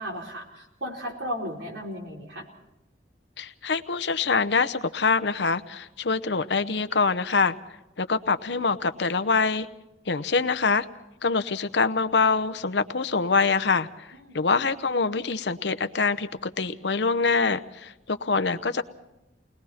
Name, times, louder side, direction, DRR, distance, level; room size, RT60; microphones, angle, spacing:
voice 1, 0.0-2.5 14.1-14.4, equal, 85° right, 0 dB, 4.4 m, -35 dB
voice 2, 3.4-7.5 8.0-9.7 10.1-10.9 11.2-14.1 14.3-18.8, left 4 dB, 75° left, 12 dB, 0.8 m, -25 dB
30.0 x 20.5 x 4.4 m, 0.93 s
head